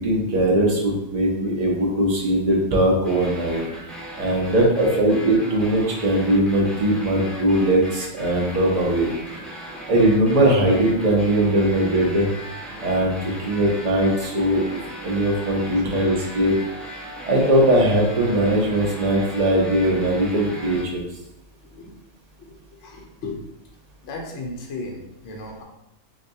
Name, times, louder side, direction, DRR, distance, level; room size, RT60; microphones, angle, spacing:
voice 1, 0.0-3.9 4.2-9.1 9.9-12.3 12.8-14.6 15.0-16.5 17.3-21.0, right 1 dB, 35° right, -2 dB, 0.8 m, -20 dB
sound 1, 3.0-20.8, right 1 dB, ahead, 0.7 m, -37 dB
voice 2, 22.8-23.5 24.0-25.6, left 2 dB, 65° left, 1 dB, 0.9 m, -36 dB
6.1 x 2.3 x 2.7 m, 0.85 s
omnidirectional pair, 1.5 m